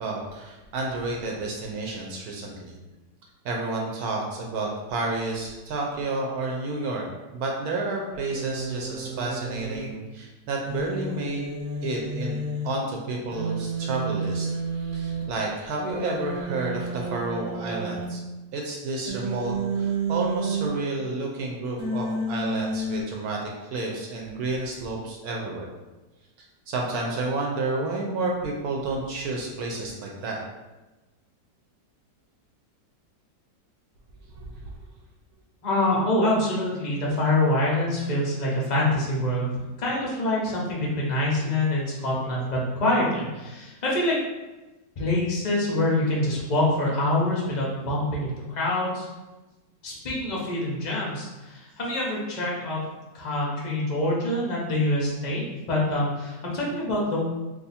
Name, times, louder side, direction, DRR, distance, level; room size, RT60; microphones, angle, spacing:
voice 1, 0.0-2.8 3.4-7.1 7.3-11.4 11.8-12.4 12.6-14.5 14.9-18.2 18.5-25.7 26.7-30.4 34.4-34.5, right 2 dB, 70° right, -1 dB, 1.0 m, -30 dB
Human voice, 8.3-9.9 10.7-12.7 13.3-15.2 15.9-18.0 19.1-20.7 21.8-23.0, right 3 dB, 35° right, 0.7 m, -31 dB
voice 2, 35.6-39.5 39.8-44.2 45.0-49.1 49.8-52.8 53.1-57.2, left 1 dB, 55° left, -5 dB, 0.4 m, -25 dB
2.7 x 2.5 x 4.1 m, 1.1 s
omnidirectional pair, 1.9 m